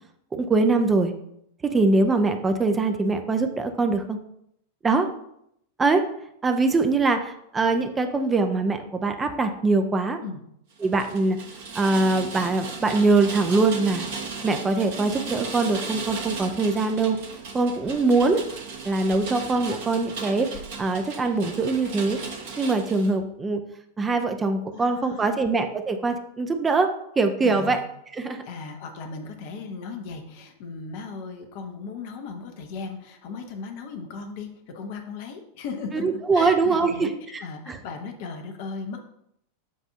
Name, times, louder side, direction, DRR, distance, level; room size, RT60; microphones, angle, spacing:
voice 1, 0.3-1.1 1.7-4.2 4.8-5.1 5.8-6.0 6.4-10.2 10.8-11.4 11.8-14.1 14.4-17.2 17.5-18.4 18.9-22.2 22.6-23.6 24.0-26.9 27.2-27.8 28.1-28.4 35.9-37.4 37.7-37.8, right 3 dB, 15° right, 7 dB, 0.6 m, -23 dB
Rain, 10.8-23.1, right 4 dB, 55° right, 1.3 m, -36 dB
voice 2, 24.7-25.4 27.4-27.8 28.4-37.1 37.4-39.0, left 4 dB, 50° left, 4 dB, 0.8 m, -37 dB
7.4 x 2.7 x 5.6 m, 0.75 s
figure-of-eight pair, 90°, 0 cm